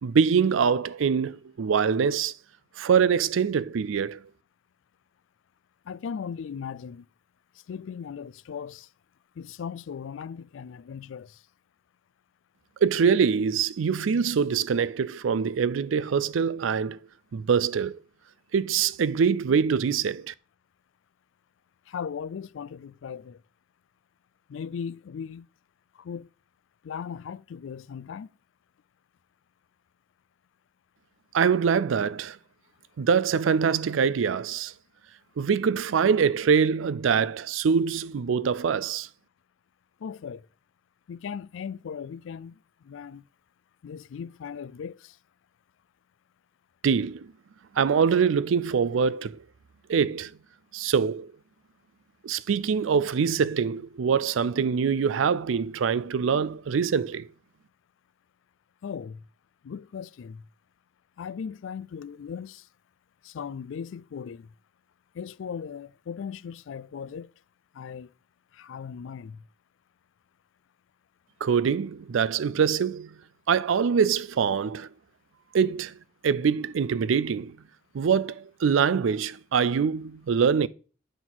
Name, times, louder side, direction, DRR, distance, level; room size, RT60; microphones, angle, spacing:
voice 1, 0.0-2.3 2.8-4.2 12.8-17.0 17.3-18.0 18.5-20.3 31.3-32.4 33.0-34.7 35.4-39.1 46.8-47.3 47.7-49.4 49.9-50.3 50.7-51.3 52.2-57.3 71.4-73.2 73.5-74.9 75.5-76.0 76.2-77.6 77.9-80.7, right 6 dB, 85° right, 0.4 m, -24 dB
voice 2, 5.9-7.0 7.7-8.9 9.4-11.4 21.9-23.4 24.5-25.5 26.0-26.3 26.8-28.3 40.0-40.4 41.1-42.6 42.8-43.2 43.8-45.2 58.8-59.2 59.6-60.4 61.2-62.7 63.2-64.5 65.1-67.3 67.7-68.1 68.5-69.4, left 7 dB, 80° left, 0.3 m, -38 dB
9.1 x 4.0 x 6.0 m
head